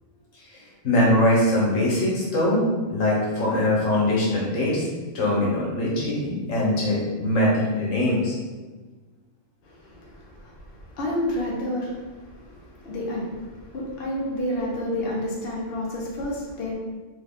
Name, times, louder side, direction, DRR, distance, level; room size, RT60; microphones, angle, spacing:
voice 1, 0.8-4.9 5.1-8.3, left 1 dB, 90° left, -5 dB, 1.3 m, -22 dB
voice 2, 9.6-16.7, left 1 dB, 55° left, -4 dB, 0.9 m, -30 dB
3.3 x 2.2 x 3.5 m, 1.3 s
omnidirectional pair, 1.3 m